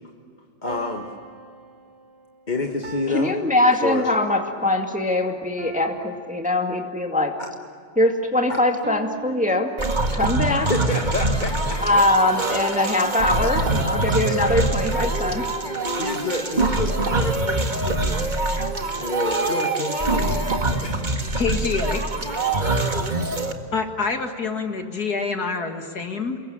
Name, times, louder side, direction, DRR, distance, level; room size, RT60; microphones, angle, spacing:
voice 1, 0.6-1.1 2.5-3.3 3.8-4.1 7.4-7.5 8.5-8.6 10.5-12.0 16.0-18.3 18.6-18.7 19.0-20.4 20.8-21.0 21.3-21.4, left 2 dB, 25° left, 2 dB, 1.5 m, -28 dB
sound 1, 0.7-4.4 5.6-7.2 8.8-10.4, right 5 dB, 60° right, 2.8 m, -42 dB
voice 2, 3.1-7.4 8.0-9.7 10.1-10.7 11.8-15.5, left 2 dB, 5° right, 3 dB, 2.0 m, -22 dB
sound 2, 9.8-23.5, right 2 dB, 25° right, 1.8 m, -24 dB
voice 3, 21.4-22.0 23.7-26.4, left 4 dB, 50° left, 5 dB, 2.5 m, -26 dB
29.5 x 22.5 x 8.9 m, 2.3 s
omnidirectional pair, 2.1 m